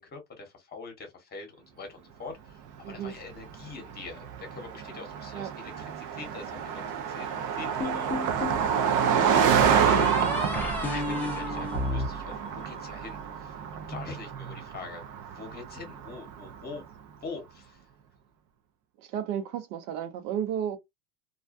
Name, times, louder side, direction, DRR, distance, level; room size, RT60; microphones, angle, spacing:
voice 1, 0.0-1.5 1.8-7.3 7.5-16.8 17.2-17.8, left 4 dB, 20° left, 1.1 m, -44 dB
Car passing by, 2.9-16.7, right 8 dB, 40° right, 0.6 m, -28 dB
sound 1, 7.8-8.6 9.6-13.0, left 2 dB, 5° left, 0.4 m, -33 dB
voice 2, 19.0-20.8, right 9 dB, 65° right, 0.9 m, -33 dB
2.4 x 2.2 x 2.5 m
supercardioid pair, 120°, 47 cm